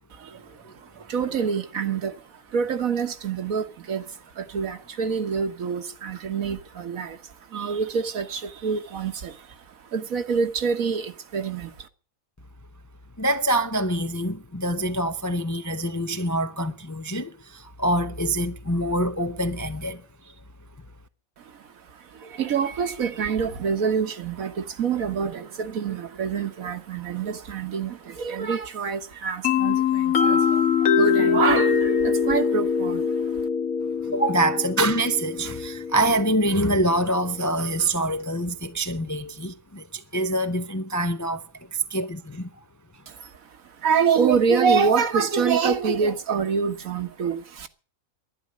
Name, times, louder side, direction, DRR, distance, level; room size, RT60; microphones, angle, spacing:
voice 1, 0.1-2.2 2.5-9.6 9.9-11.9 21.4-33.4 43.1-43.3 43.8-47.7, right 6 dB, 75° right, 1.6 m, -26 dB
voice 2, 13.2-20.3 34.0-42.5, right 1 dB, 20° left, 0.4 m, -25 dB
sound 1, 29.4-37.1, left 6 dB, 80° left, 1.6 m, -23 dB
11.5 x 10.5 x 9.6 m
omnidirectional pair, 1.5 m